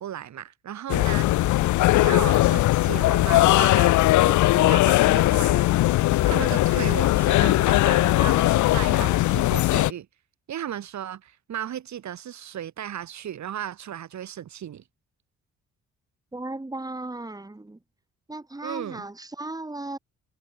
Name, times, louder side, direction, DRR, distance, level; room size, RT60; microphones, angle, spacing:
voice 1, 0.0-1.3 1.6-4.0 4.3-5.8 6.2-10.1 10.5-14.8 18.6-19.0, right 10 dB, 65° right, 6.7 m, -35 dB
sound 1, 0.9-9.9, left 17 dB, 75° left, 0.6 m, -19 dB
voice 2, 16.3-17.8 18.3-20.0, right 2 dB, 10° right, 4.1 m, -36 dB
cardioid pair, 90°, 30 cm